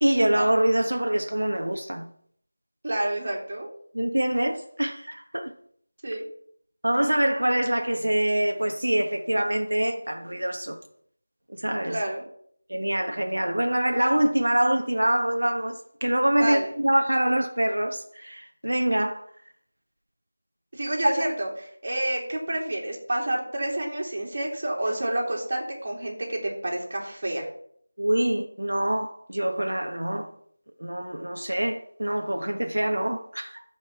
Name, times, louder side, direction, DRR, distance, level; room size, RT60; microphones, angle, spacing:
voice 1, 0.0-2.1 3.9-5.5 6.8-10.8 11.6-12.0 12.7-19.3 21.2-21.3 28.0-30.3 30.8-33.6, right 1 dB, 90° right, 1.3 m, -25 dB
voice 2, 2.8-3.7 6.0-6.2 11.9-12.3 16.3-16.7 20.7-27.5, right 1 dB, 40° right, 2.8 m, -29 dB
13.0 x 5.2 x 5.9 m
figure-of-eight pair, 175°, 0 cm